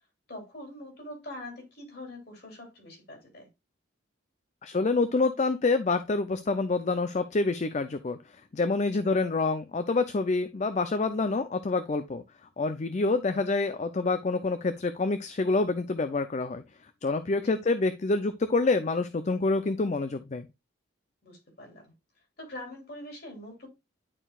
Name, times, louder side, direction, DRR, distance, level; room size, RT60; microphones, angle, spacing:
voice 1, 0.3-3.5 8.9-9.0 17.3-17.5 21.2-21.9 22.4-23.7, left 1 dB, 55° left, 2.8 m, -44 dB
voice 2, 4.6-8.2 8.5-12.2 12.6-16.6 17.0-20.5, left 3 dB, 35° left, 0.4 m, -27 dB
11.0 x 4.5 x 2.3 m
head